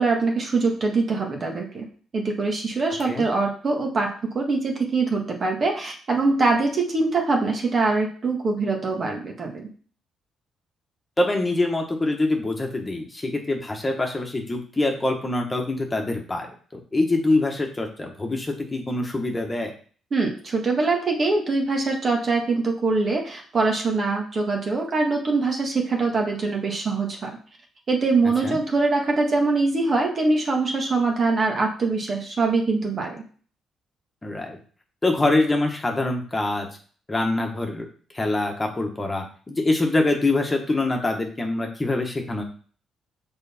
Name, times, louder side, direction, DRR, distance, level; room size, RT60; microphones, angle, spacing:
voice 1, 0.0-1.8 2.1-9.7 20.1-27.3 27.9-33.2, right 3 dB, 45° right, 1 dB, 1.6 m, -23 dB
voice 2, 11.2-16.5 16.9-19.7 28.4-28.6 34.2-34.6 35.0-36.7 37.1-37.9 38.1-42.4, left 2 dB, 20° left, 2 dB, 1.4 m, -24 dB
6.6 x 4.0 x 4.3 m, 0.43 s
cardioid pair, 90°, 0 cm